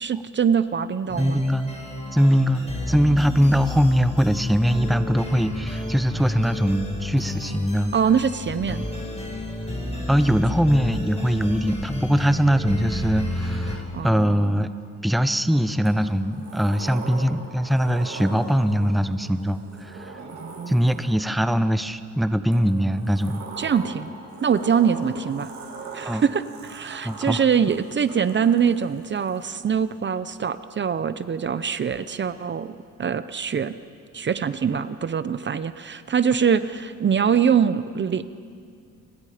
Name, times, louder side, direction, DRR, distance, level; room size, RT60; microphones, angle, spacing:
voice 1, 0.0-1.4 7.9-8.9 13.9-14.6 20.4-20.9 23.6-24.1 24.4-25.5 25.9-32.7 33.0-33.8 34.1-38.2, right 7 dB, 40° right, 13 dB, 0.7 m, -23 dB
sound 1, 1.1-13.8, left 2 dB, 20° left, 5.7 m, -31 dB
voice 2, 1.2-1.7 2.1-7.9 10.1-14.7 15.0-20.1 20.7-23.4 26.0-26.2 27.0-27.4, equal, ahead, 11 dB, 0.8 m, -21 dB
Sliding door, 13.5-14.9 15.8-21.4 22.5-29.6, right 3 dB, 70° right, 5.1 m, -41 dB
29.5 x 21.0 x 5.1 m, 2.3 s
cardioid pair, 90°, 30 cm